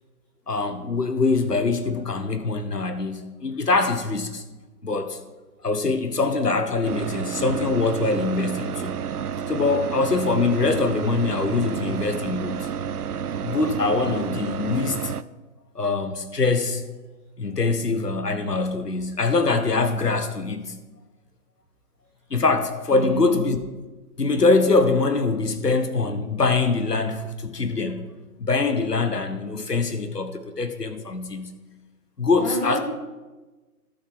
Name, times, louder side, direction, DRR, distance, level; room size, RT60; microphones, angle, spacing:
voice 1, 0.5-4.4 4.8-5.2 5.6-9.1 9.5-12.7 13.4-15.1 15.7-16.9 17.4-20.8 22.3-23.6 24.2-28.1 28.4-31.5 32.2-32.8, left 3 dB, 80° left, 9 dB, 1.3 m, -23 dB
sound 1, 6.8-15.2, right 7 dB, 70° right, 0.6 m, -30 dB
voice 2, 22.9-23.4 32.4-32.8, right 1 dB, 5° left, -7 dB, 1.4 m, -29 dB
17.5 x 7.5 x 3.6 m, 1.2 s
figure-of-eight pair, 140°, 47 cm